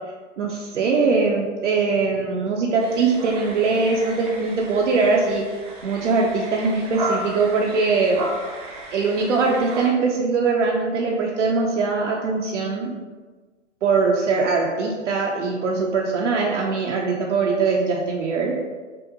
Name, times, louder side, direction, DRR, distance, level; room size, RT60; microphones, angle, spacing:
voice 1, 0.4-5.4 5.8-8.2 8.9-12.9 13.8-18.5, right 4 dB, 65° right, -1 dB, 0.6 m, -21 dB
sound 1, 2.8-9.9, right 1 dB, 30° right, 0.7 m, -34 dB
5.2 x 2.1 x 2.7 m, 1.4 s
hypercardioid pair, 130°, 38 cm